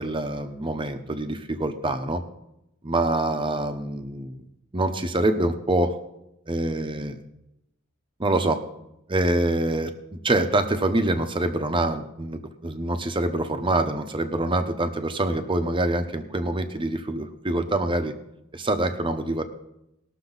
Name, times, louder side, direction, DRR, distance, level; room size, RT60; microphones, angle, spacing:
voice 1, 0.0-2.2 2.8-4.4 4.7-6.0 6.5-7.2 8.2-8.6 9.1-18.1 18.5-19.4, right 2 dB, 25° right, 7 dB, 0.9 m, -25 dB
20.0 x 6.6 x 4.0 m, 0.85 s
head